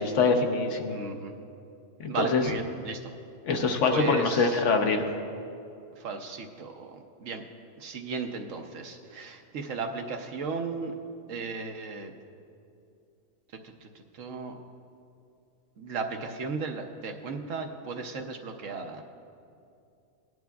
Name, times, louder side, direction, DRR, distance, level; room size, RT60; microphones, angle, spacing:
voice 1, 0.0-1.0 2.0-2.4 3.5-5.0, left 4 dB, 65° left, 4 dB, 1.1 m, -24 dB
voice 2, 0.8-1.3 2.1-3.1 3.9-4.6 6.0-7.4 7.8-10.9 11.3-12.1 13.8-13.9 14.2-14.5 15.8-19.0, right 4 dB, 70° right, 4 dB, 1.1 m, -35 dB
18.0 x 11.0 x 2.3 m, 2.5 s
omnidirectional pair, 1.4 m